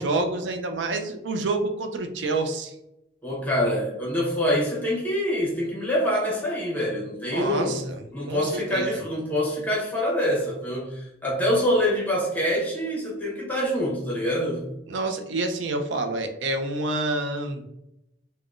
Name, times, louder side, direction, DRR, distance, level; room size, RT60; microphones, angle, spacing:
voice 1, 0.0-2.7 7.3-8.0 8.3-9.0 14.9-17.6, right 2 dB, 85° right, 6 dB, 0.4 m, -28 dB
voice 2, 3.2-7.8 8.1-14.6, equal, 10° left, -5 dB, 0.8 m, -25 dB
3.5 x 2.1 x 2.4 m, 0.85 s
head